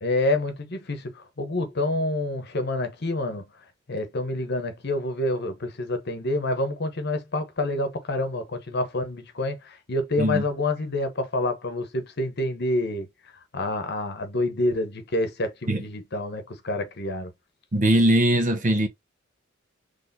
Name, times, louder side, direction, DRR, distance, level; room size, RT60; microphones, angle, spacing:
voice 1, 0.0-3.4 3.9-13.1 13.5-17.3, left 2 dB, 55° left, 1.0 m, -27 dB
voice 2, 17.7-18.9, right 1 dB, 40° right, 0.7 m, -20 dB
4.1 x 3.2 x 2.6 m
head